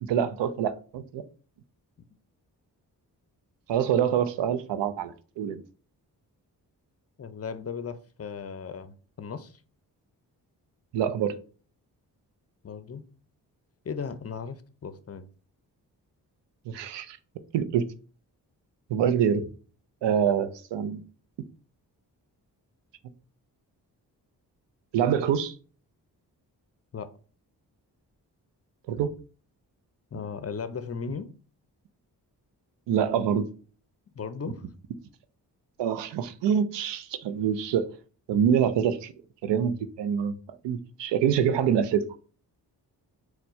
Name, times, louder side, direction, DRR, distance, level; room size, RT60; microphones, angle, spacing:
voice 1, 0.0-1.2 3.7-5.6 10.9-11.3 16.7-17.2 17.5-17.9 18.9-19.5 20.0-21.0 24.9-25.5 28.9-29.1 32.9-33.5 35.8-37.9 38.3-39.1 39.4-40.3 40.6-42.0, right 8 dB, 80° right, 0.6 m, -25 dB
voice 2, 7.2-9.6 12.6-13.0 13.8-15.2 26.9-27.1 30.1-31.3 34.1-34.6, left 6 dB, 35° left, 0.5 m, -36 dB
4.3 x 2.2 x 4.2 m
supercardioid pair, 45°, 42 cm